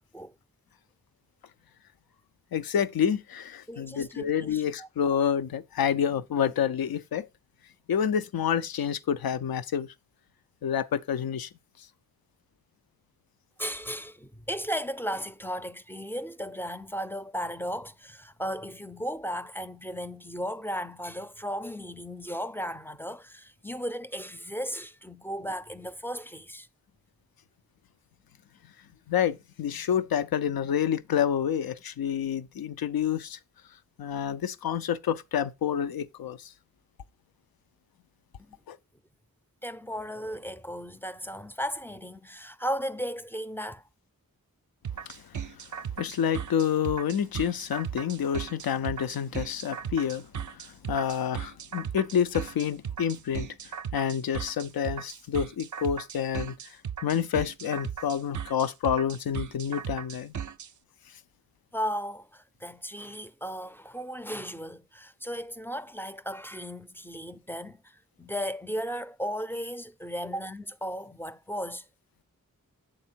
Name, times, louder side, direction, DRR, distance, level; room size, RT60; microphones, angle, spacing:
voice 1, 2.5-7.3 7.9-9.9 10.6-11.5 29.1-33.4 34.0-36.5 38.7-38.8 45.1-45.2 46.0-50.3 50.5-53.5 53.9-56.5 57.0-60.3, left 8 dB, 80° left, 0.5 m, -28 dB
voice 2, 3.7-4.9 13.6-26.7 38.5-38.6 39.6-43.8 61.7-71.9, equal, 5° left, 0.4 m, -35 dB
sound 1, 44.8-60.7, right 8 dB, 60° right, 0.5 m, -36 dB
7.8 x 3.5 x 4.3 m
cardioid pair, 40°, 35 cm